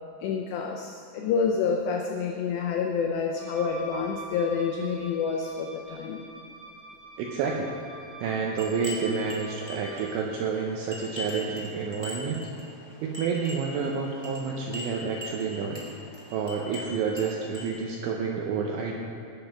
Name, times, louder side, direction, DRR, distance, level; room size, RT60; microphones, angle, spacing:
voice 1, 0.2-6.2, left 5 dB, 90° left, 2 dB, 2.4 m, -28 dB
Wind instrument woodwind instrument, 3.3-10.1, right 2 dB, 55° left, 4.8 m, -45 dB
voice 2, 7.2-7.7 8.2-12.4 13.0-15.8 16.3-18.9, right 5 dB, 75° right, 0 dB, 3.0 m, -29 dB
sound 1, 8.6-17.7, equal, 10° left, 1.8 m, -42 dB
18.5 x 7.0 x 5.8 m, 2.8 s
omnidirectional pair, 6.0 m